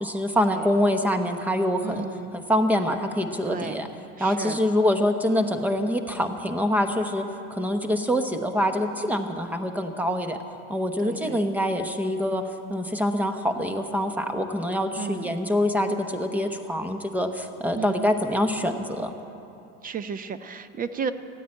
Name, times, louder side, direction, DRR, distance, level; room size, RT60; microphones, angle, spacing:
voice 1, 0.0-2.0 2.3-3.9 4.2-10.4 10.7-12.4 12.7-19.1, equal, 5° right, 7 dB, 0.9 m, -25 dB
voice 2, 1.8-2.3 3.4-3.9 4.2-4.6 11.0-11.5 15.0-15.3 17.7-18.1 19.8-21.1, right 6 dB, 25° right, 12 dB, 0.6 m, -33 dB
14.0 x 9.9 x 8.9 m, 2.8 s
supercardioid pair, 125°, 34 cm